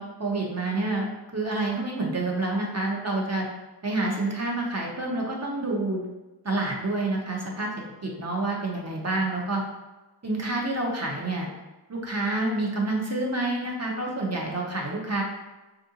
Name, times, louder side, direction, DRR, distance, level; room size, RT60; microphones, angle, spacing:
voice 1, 0.0-3.5 3.8-6.0 6.4-7.7 8.0-9.6 10.2-11.5 11.9-15.2, right 2 dB, 35° right, -1 dB, 0.8 m, -28 dB
3.5 x 2.5 x 2.8 m, 1.1 s
wide cardioid pair, 50°, 45 cm